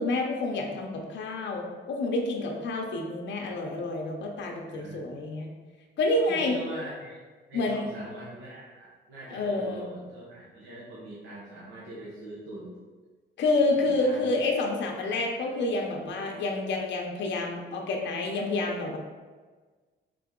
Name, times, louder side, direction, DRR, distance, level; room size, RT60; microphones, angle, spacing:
voice 1, 0.0-5.5 6.0-6.6 7.5-7.9 9.3-9.9 13.4-19.0, left 2 dB, 65° left, 1 dB, 0.7 m, -28 dB
voice 2, 4.7-5.1 6.3-7.2 7.5-12.8 13.8-14.3 15.0-15.5, right 1 dB, 80° right, -7 dB, 1.0 m, -42 dB
3.8 x 3.3 x 3.7 m, 1.4 s
cardioid pair, 90°, 20 cm